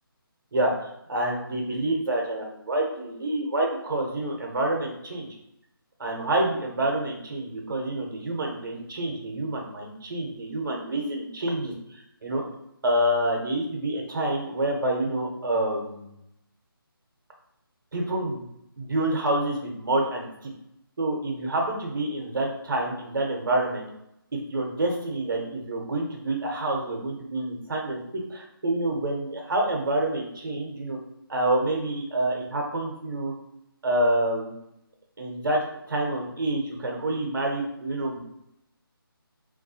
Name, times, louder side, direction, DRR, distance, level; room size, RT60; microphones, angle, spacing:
voice 1, 0.5-5.3 6.0-12.4 12.8-16.1 17.9-18.4 18.8-20.5 21.0-23.9 24.3-31.0 31.3-33.3 33.8-34.5 35.2-38.2, right 1 dB, 60° right, 0 dB, 0.7 m, -27 dB
2.4 x 2.2 x 2.7 m, 0.81 s
figure-of-eight pair, 160°, 12 cm